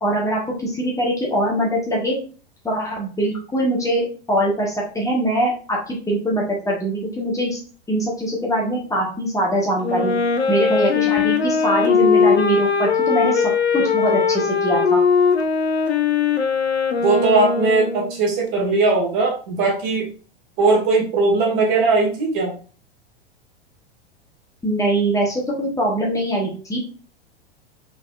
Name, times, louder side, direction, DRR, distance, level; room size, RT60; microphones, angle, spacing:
voice 1, 0.0-2.2 2.6-7.6 7.9-10.2 10.5-13.4 13.7-15.0 24.6-26.8, right 1 dB, 10° left, -3 dB, 1.2 m, -22 dB
Wind instrument woodwind instrument, 9.8-18.2, left 6 dB, 75° left, 0.7 m, -19 dB
voice 2, 17.0-20.1 20.6-22.5, right 3 dB, 45° right, -1 dB, 1.7 m, -19 dB
4.0 x 4.0 x 2.4 m, 0.40 s
figure-of-eight pair, 90°, 32 cm